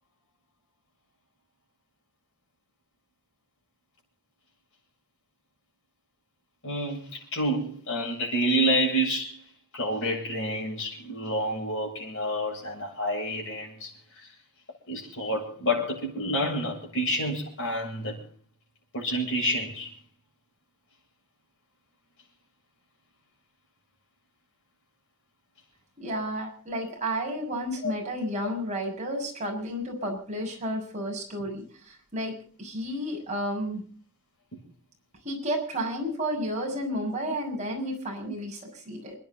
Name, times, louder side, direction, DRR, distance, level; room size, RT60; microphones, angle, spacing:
voice 1, 6.6-9.4 9.7-13.9 14.9-18.2 18.9-19.9 27.8-27.9 34.5-34.6 38.2-38.3, equal, 55° left, 7.7 m, -28 dB
voice 2, 26.0-33.8 35.2-39.1, equal, 30° right, 6.5 m, -32 dB
28.5 x 10.5 x 4.0 m
head